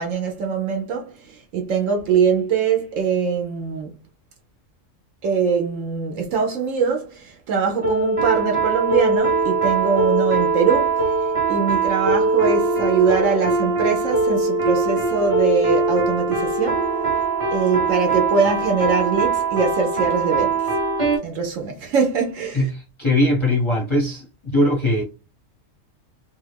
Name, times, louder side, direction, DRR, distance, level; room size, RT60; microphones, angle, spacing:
voice 1, 0.0-3.9 5.2-11.0 11.5-16.9 17.5-20.7 21.2-22.7, right 5 dB, 80° right, 1.0 m, -22 dB
sound 1, 7.8-21.2, right 4 dB, 30° right, 0.7 m, -21 dB
voice 2, 22.5-24.3 24.5-25.0, left 1 dB, 35° left, 0.5 m, -20 dB
2.6 x 2.4 x 3.2 m
omnidirectional pair, 1.4 m